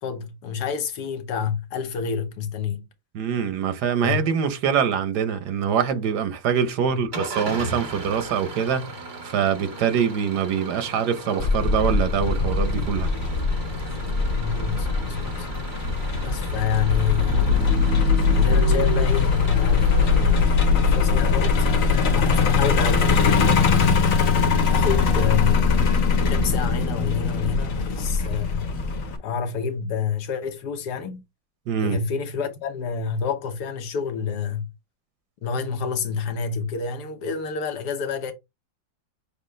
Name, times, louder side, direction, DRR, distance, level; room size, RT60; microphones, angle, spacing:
voice 1, 0.0-2.8 4.0-4.2 6.9-7.0 14.3-15.5 16.2-17.9 18.3-24.0 24.7-26.0 26.3-28.7 29.2-31.2 31.8-34.7 35.4-38.3, left 6 dB, 80° left, 1.4 m, -28 dB
voice 2, 3.1-8.9 9.2-13.1 31.7-32.0, right 7 dB, 80° right, 1.4 m, -24 dB
Engine starting / Idling, 7.1-21.3, right 2 dB, 35° right, 1.1 m, -37 dB
Truck, 11.4-29.2, left 4 dB, 60° left, 1.3 m, -24 dB
sound 1, 16.4-27.0, left 5 dB, 65° right, 4.0 m, -21 dB
6.5 x 2.3 x 3.1 m
omnidirectional pair, 1.7 m